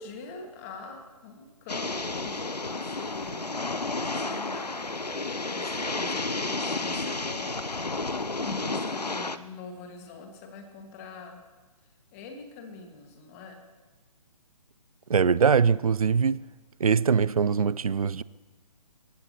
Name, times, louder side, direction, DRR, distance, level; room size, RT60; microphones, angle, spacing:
voice 1, 0.0-3.5 4.0-7.6 8.0-11.4 11.8-13.7, left 4 dB, 20° left, 1.8 m, -44 dB
sound 1, 1.7-9.4, left 3 dB, 85° left, 0.8 m, -31 dB
voice 2, 15.1-16.4 16.8-18.2, right 6 dB, 65° right, 0.5 m, -22 dB
27.0 x 15.5 x 2.9 m
figure-of-eight pair, 135°, 20 cm